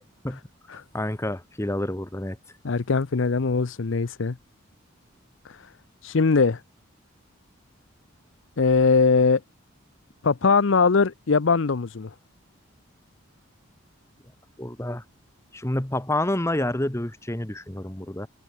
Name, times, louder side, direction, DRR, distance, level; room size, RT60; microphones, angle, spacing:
voice 1, 0.7-2.4 14.6-15.0 15.5-18.3, left 1 dB, 15° left, 1.1 m, -28 dB
voice 2, 2.6-4.4 5.5-5.6 6.0-6.6 8.6-9.4 10.2-12.1, left 4 dB, 65° left, 0.6 m, -21 dB
head